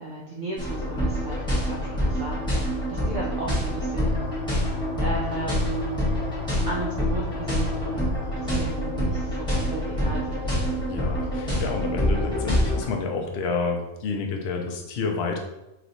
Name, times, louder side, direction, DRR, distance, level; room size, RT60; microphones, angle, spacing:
voice 1, 0.0-4.3 4.6-4.7 5.0-6.1 6.7-10.6, right 2 dB, 70° right, -4 dB, 0.4 m, -35 dB
sound 1, 0.6-12.9, equal, 5° left, 1.3 m, -26 dB
voice 2, 10.9-15.4, left 4 dB, 60° left, 3 dB, 0.7 m, -29 dB
3.1 x 3.1 x 3.9 m, 0.95 s
omnidirectional pair, 1.5 m